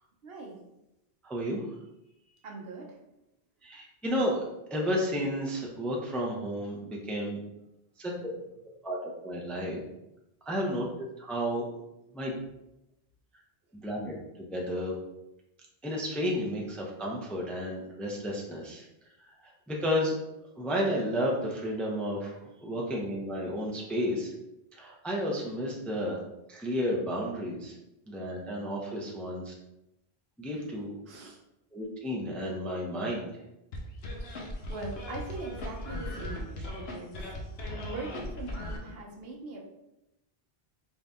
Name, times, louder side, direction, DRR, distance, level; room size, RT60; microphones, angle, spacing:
voice 1, 0.2-0.6 2.4-3.0 8.3-8.4 31.1-31.4 34.7-37.2 37.8-39.6, right 3 dB, 70° right, 0 dB, 1.0 m, -41 dB
voice 2, 1.2-1.6 3.6-4.4 4.7-7.4 8.0-8.3 8.8-9.8 10.5-11.7 12.1-12.4 13.7-14.1 14.5-15.0 15.8-18.8 19.2-19.3 19.7-20.1 20.6-22.3 22.6-24.3 24.7-26.2 26.5-27.7 28.1-29.5 30.4-30.9 31.2-31.3 31.7-33.3, equal, ahead, -2 dB, 0.5 m, -32 dB
sound 1, 33.7-38.8, left 1 dB, 80° left, 1.0 m, -38 dB
3.9 x 2.7 x 3.5 m, 0.90 s
omnidirectional pair, 1.0 m